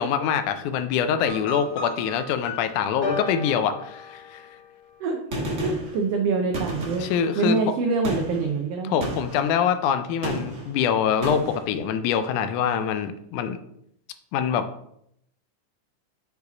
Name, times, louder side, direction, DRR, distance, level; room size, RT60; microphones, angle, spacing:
voice 1, 0.0-4.4 7.0-7.6 8.8-13.6 14.3-14.7, left 8 dB, 80° left, 10 dB, 2.0 m, -24 dB
sound 1, 1.3-4.7, left 3 dB, 60° left, 2.0 m, -34 dB
Gunshot gunfire, 5.3-6.0 6.5-7.3 8.0-8.4 9.0-9.5 10.2-10.7 11.2-11.6, right 1 dB, 40° right, 1.0 m, -31 dB
voice 2, 5.6-7.1 7.4-9.0, right 4 dB, 85° right, 3 dB, 1.4 m, -25 dB
6.7 x 4.8 x 3.9 m, 0.73 s
omnidirectional pair, 3.6 m